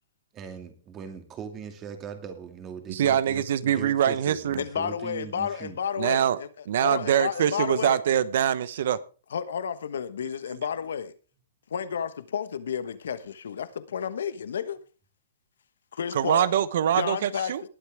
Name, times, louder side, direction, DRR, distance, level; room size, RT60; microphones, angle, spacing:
voice 1, 0.3-5.8, right 7 dB, 25° right, 2.3 m, -40 dB
voice 2, 2.9-4.6 6.0-6.4 6.7-9.0 16.1-17.6, right 9 dB, 65° right, 0.9 m, -24 dB
voice 3, 4.6-6.5 6.8-8.0 9.3-11.1 11.7-14.8 15.9-16.5 16.9-17.5, left 7 dB, 75° left, 1.2 m, -31 dB
20.0 x 8.4 x 3.5 m
hypercardioid pair, 135°, 0 cm